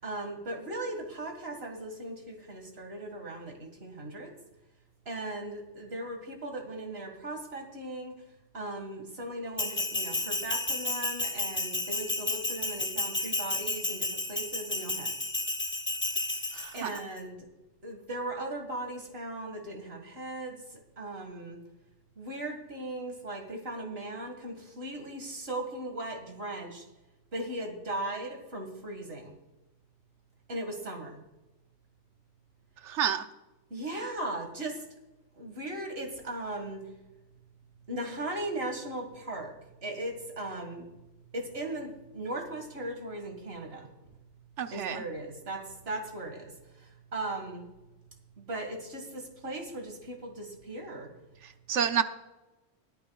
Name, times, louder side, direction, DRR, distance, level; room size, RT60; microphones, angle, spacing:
voice 1, 0.0-4.3 5.1-8.1 8.5-15.1 16.1-16.5 16.7-17.4 17.8-20.6 21.0-21.6 22.2-26.9 27.3-29.3 30.5-31.2 33.7-34.8 35.4-36.8 37.9-39.5 39.8-40.9 41.3-43.9 44.7-47.6 48.4-51.1, right 1 dB, 60° right, 4 dB, 2.2 m, -38 dB
Bell, 9.6-17.0, left 2 dB, 15° left, 0.4 m, -32 dB
voice 2, 16.5-16.9 32.9-33.2 44.6-45.0 51.7-52.0, right 8 dB, 80° right, 10 dB, 1.1 m, -29 dB
20.5 x 10.5 x 2.4 m, 1.0 s
omnidirectional pair, 1.2 m